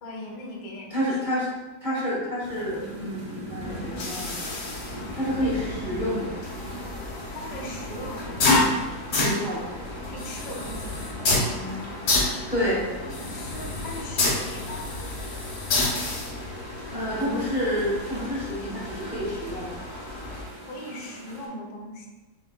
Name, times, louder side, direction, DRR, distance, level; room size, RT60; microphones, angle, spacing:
voice 1, 0.0-1.4 7.3-8.8 10.1-12.5 13.0-15.0 20.7-22.1, left 1 dB, 90° left, 0 dB, 1.7 m, -40 dB
voice 2, 0.9-1.5 1.8-4.3 5.1-6.3 9.2-9.6 12.5-12.8 16.9-19.7, equal, 25° right, -8 dB, 1.3 m, -28 dB
sound 1, 2.4-21.5, right 1 dB, 45° right, 0.3 m, -41 dB
sound 2, 3.6-20.4, left 2 dB, 50° left, 1.0 m, -30 dB
6.2 x 3.8 x 2.2 m, 1.2 s
omnidirectional pair, 2.2 m